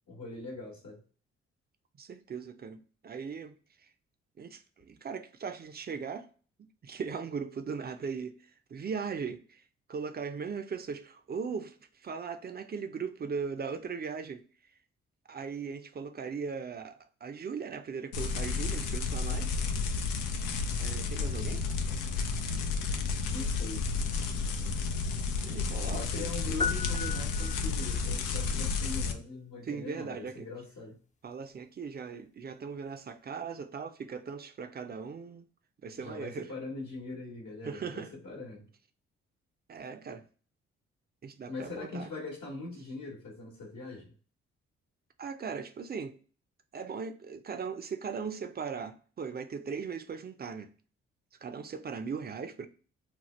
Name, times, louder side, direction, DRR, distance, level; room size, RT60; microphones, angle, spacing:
voice 1, 0.1-1.0 23.3-23.8 25.9-31.0 36.0-38.7 41.5-44.1, left 3 dB, 65° left, 1.1 m, -41 dB
voice 2, 2.0-3.5 4.4-6.3 6.8-8.4 8.7-9.6 9.9-11.8 12.0-14.4 15.3-19.6 20.8-21.6 25.4-26.3 29.6-30.5 31.2-35.4 35.8-36.5 37.6-38.1 39.7-40.2 41.2-42.1 45.2-46.2 46.7-50.7 51.4-52.7, right 5 dB, 35° right, 0.5 m, -38 dB
sound 1, 18.1-29.1, left 4 dB, 90° left, 0.4 m, -32 dB
sound 2, 26.6-28.1, left 5 dB, 25° left, 0.5 m, -35 dB
2.9 x 2.0 x 3.0 m
hypercardioid pair, 50°, 29 cm